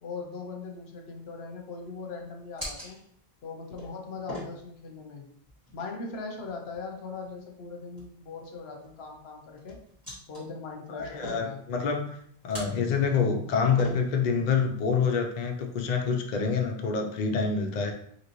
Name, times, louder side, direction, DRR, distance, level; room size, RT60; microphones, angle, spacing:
voice 1, 0.0-3.0 3.4-5.3 5.7-9.8 10.3-11.6, left 4 dB, 75° left, 2 dB, 0.9 m, -40 dB
sound 1, 0.6-16.0, left 1 dB, 20° right, 1.4 m, -46 dB
voice 2, 10.9-12.1 12.4-17.9, left 5 dB, 55° left, 3 dB, 0.6 m, -27 dB
4.0 x 2.9 x 3.0 m, 0.66 s
omnidirectional pair, 1.1 m